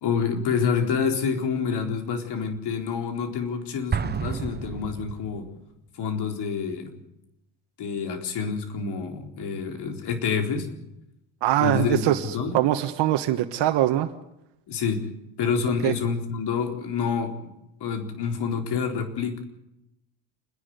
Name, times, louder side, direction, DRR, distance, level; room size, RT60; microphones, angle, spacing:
voice 1, 0.0-5.5 6.0-7.0 7.8-10.7 11.6-12.6 14.7-15.0 15.4-17.4 17.8-19.4, left 6 dB, 65° left, 4 dB, 4.2 m, -27 dB
Explosion, 3.9-5.6, right 6 dB, 25° right, 0.8 m, -30 dB
voice 2, 11.4-12.2 12.5-14.1 15.8-15.9, right 13 dB, 70° right, 6 dB, 1.4 m, -22 dB
28.5 x 11.0 x 9.5 m, 0.87 s
cardioid pair, 105°, 43 cm